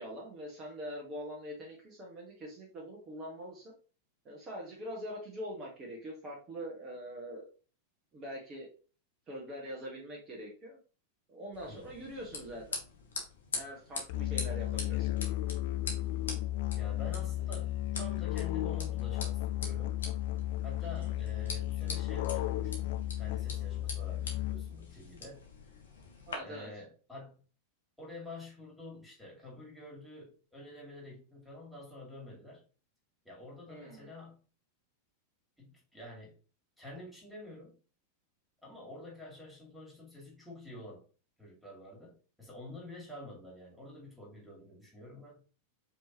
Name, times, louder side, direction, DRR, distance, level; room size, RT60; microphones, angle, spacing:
voice 1, 0.0-3.7 4.2-7.4 8.1-8.7 9.3-10.8 11.3-12.8 13.5-15.2 20.8-21.1 26.3-26.7 33.7-34.1, equal, 25° right, 1.3 m, -43 dB
sound 1, 11.5-26.3, left 3 dB, 70° left, 1.2 m, -44 dB
Musical instrument, 14.1-24.9, left 13 dB, 50° left, 0.3 m, -34 dB
voice 2, 16.8-20.0 20.6-25.4 26.4-27.4 28.0-32.6 33.2-34.4 35.6-36.3 36.8-37.8 38.6-41.0 41.4-45.4, left 1 dB, ahead, 2.2 m, -48 dB
5.1 x 3.2 x 2.9 m
figure-of-eight pair, 90°, 0 cm